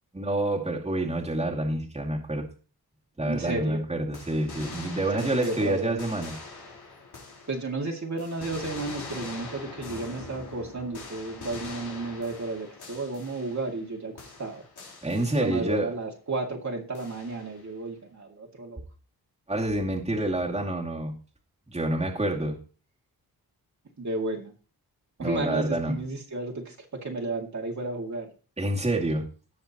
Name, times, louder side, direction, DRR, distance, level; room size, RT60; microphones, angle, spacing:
voice 1, 0.1-2.5 3.2-6.3 15.0-15.9 19.5-21.1 21.7-22.6 25.2-26.0 28.6-29.3, right 1 dB, 15° right, -1 dB, 2.3 m, -28 dB
voice 2, 3.2-3.9 5.1-5.9 7.5-14.6 15.4-18.8 24.0-24.5 25.2-28.3, right 2 dB, 45° right, 0 dB, 2.2 m, -33 dB
sound 1, 4.1-7.8 8.2-13.9 14.2-15.8 16.9-17.7, left 3 dB, 85° left, 3.5 m, -43 dB
17.5 x 6.5 x 2.9 m, 0.36 s
wide cardioid pair, 95°, 38 cm